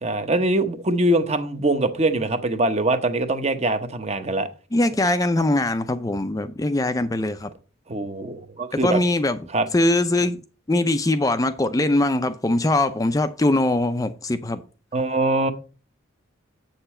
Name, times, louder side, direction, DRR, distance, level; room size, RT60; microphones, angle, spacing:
voice 1, 0.0-4.5 7.9-9.0 9.5-9.7 14.9-15.5, right 2 dB, 35° right, 0.9 m, -23 dB
voice 2, 4.7-7.5 8.8-9.4 9.7-10.4 10.7-14.6, left 2 dB, 15° left, 0.4 m, -21 dB
7.9 x 6.8 x 4.3 m
head